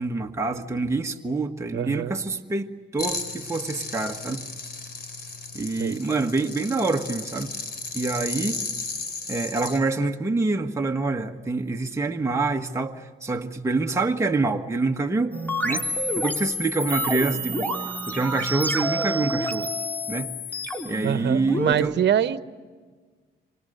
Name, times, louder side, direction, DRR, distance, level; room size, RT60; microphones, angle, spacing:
voice 1, 0.0-4.4 5.5-7.5 7.9-8.6 9.3-15.9 16.2-17.7 18.1-19.7 20.1-20.3 20.8-21.9, right 3 dB, 15° right, 1.4 m, -26 dB
voice 2, 1.7-2.2 5.8-6.0 21.0-22.4, right 10 dB, 60° right, 1.1 m, -24 dB
sound 1, 3.0-9.8, left 4 dB, 55° left, 4.3 m, -34 dB
sound 2, 15.3-21.7, equal, 10° left, 3.5 m, -28 dB
28.0 x 26.0 x 6.7 m
cardioid pair, 90°, 20 cm